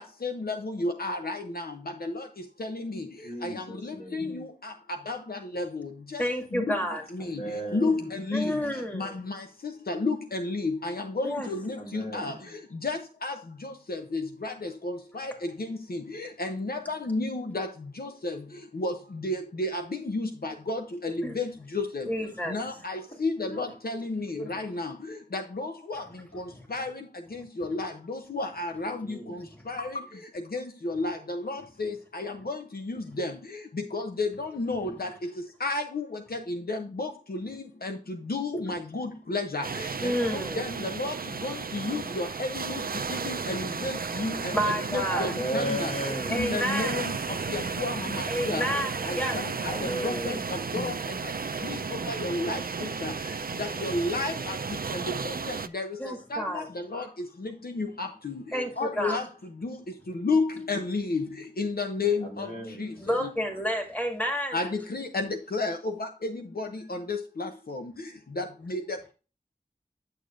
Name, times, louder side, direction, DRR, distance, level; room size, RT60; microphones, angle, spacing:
voice 1, 0.0-1.7 2.1-2.2 2.6-3.0 3.4-4.7 5.1-5.9 6.1-6.2 6.6-6.7 7.3-7.4 7.7-8.5 8.9-9.4 9.9-12.3 12.8-13.3 13.6-14.5 14.8-15.3 15.9-17.7 18.0-18.4 18.8-18.9 19.2-19.8 20.1-21.5 21.7-22.0 22.5-24.9 25.3-26.0 26.4-26.5 26.7-26.9 27.6-29.0 29.7-29.9 30.5-32.6 32.9-33.3 33.9-35.1 35.6-36.1 36.3-37.5 37.8-37.9 38.3-39.9 40.3-40.7 41.0-41.1 41.4-42.8 43.1-44.3 44.9-45.9 46.3-47.1 47.5-48.6 49.0-49.4 50.0-50.3 50.7-50.9 51.6-51.8 52.1-52.6 53.0-53.1 53.6-54.6 55.2-55.9 56.3-56.6 56.9-57.1 57.8-58.3 58.8-59.2 59.6-59.7 60.2-61.3 61.6-62.5 62.8-62.9 63.2-63.3 64.5-66.3 66.6-67.8 68.4-69.0, left 3 dB, 80° left, 5 dB, 0.7 m, -31 dB
voice 2, 3.2-4.3 7.2-8.1 11.8-12.4 29.0-29.5 29.8-30.1 45.1-46.5 49.6-50.5 55.6-55.8 56.9-57.1 62.2-63.0, right 1 dB, 50° left, -2 dB, 3.7 m, -35 dB
voice 3, 6.2-7.0 8.3-9.1 11.2-11.5 21.2-21.4 22.1-22.6 40.0-40.6 44.5-45.3 46.3-47.0 48.3-49.4 56.0-56.7 58.5-59.2 63.0-64.6, equal, 10° left, 3 dB, 2.1 m, -30 dB
sound 1, 39.6-55.7, right 5 dB, 70° right, 0.5 m, -33 dB
9.8 x 6.5 x 2.5 m, 0.33 s
wide cardioid pair, 50°, 16 cm